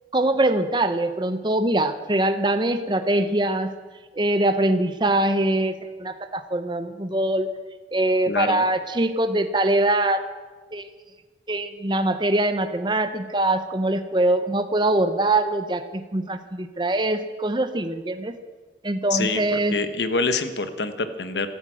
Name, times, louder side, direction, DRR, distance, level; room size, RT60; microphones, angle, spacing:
voice 1, 0.1-3.7 4.2-5.7 6.0-7.5 7.9-10.2 10.7-10.8 11.5-15.9 16.1-18.4 18.8-19.7, right 1 dB, 25° right, 9 dB, 0.7 m, -23 dB
voice 2, 8.3-8.6 19.1-21.5, left 3 dB, 80° left, 10 dB, 1.2 m, -26 dB
14.5 x 13.0 x 7.7 m, 1.4 s
head